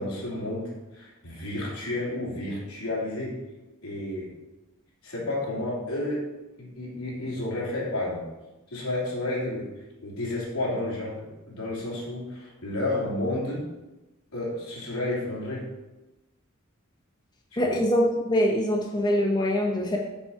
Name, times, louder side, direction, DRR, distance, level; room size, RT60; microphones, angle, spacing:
voice 1, 0.0-3.4 3.8-4.3 5.0-6.3 6.6-8.2 8.7-9.7 10.0-13.7 14.3-15.6 17.6-17.8, left 1 dB, 90° left, -4 dB, 3.1 m, -31 dB
voice 2, 17.6-20.0, equal, 20° left, 0 dB, 0.9 m, -24 dB
7.2 x 7.1 x 4.6 m, 1.1 s
head